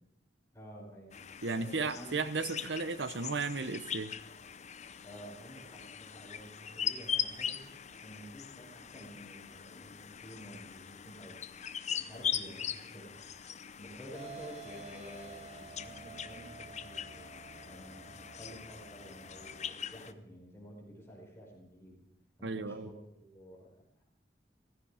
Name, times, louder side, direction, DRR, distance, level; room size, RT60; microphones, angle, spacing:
voice 1, 0.5-1.2 1.5-2.2 5.0-11.4 12.0-13.2 13.8-17.3 17.6-22.0 22.4-23.7, equal, 15° left, -4 dB, 5.2 m, -51 dB
sound 1, 1.1-20.1, left 8 dB, 40° left, 0.7 m, -41 dB
voice 2, 1.4-4.1 22.4-22.9, right 4 dB, 75° right, 13 dB, 0.9 m, -34 dB
sound 2, 14.1-19.7, right 4 dB, 35° right, 1.4 m, -51 dB
15.5 x 15.0 x 5.0 m, 0.80 s
head